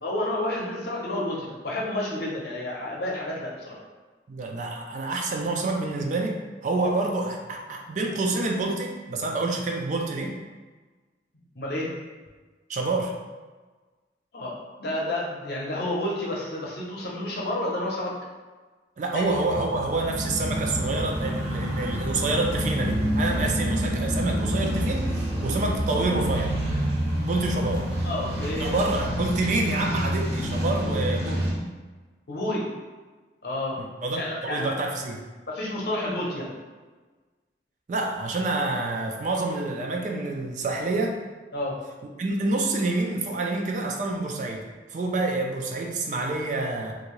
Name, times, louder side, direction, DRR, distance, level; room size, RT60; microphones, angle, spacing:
voice 1, 0.0-3.8 11.6-11.9 14.3-18.2 19.1-19.3 28.0-28.8 32.3-32.7 33.4-33.8 34.1-34.7 35.5-36.5 41.5-41.8, left 1 dB, 60° left, -3 dB, 0.7 m, -30 dB
voice 2, 4.3-10.4 12.7-13.1 19.0-25.1 25.4-26.5 27.2-27.9 28.6-31.5 33.8-35.2 37.9-41.2 42.2-44.7 44.9-46.9, right 2 dB, 45° right, 2 dB, 0.3 m, -27 dB
sound 1, 19.3-31.5, equal, 75° right, 1.0 m, -28 dB
2.7 x 2.5 x 3.0 m, 1.3 s
head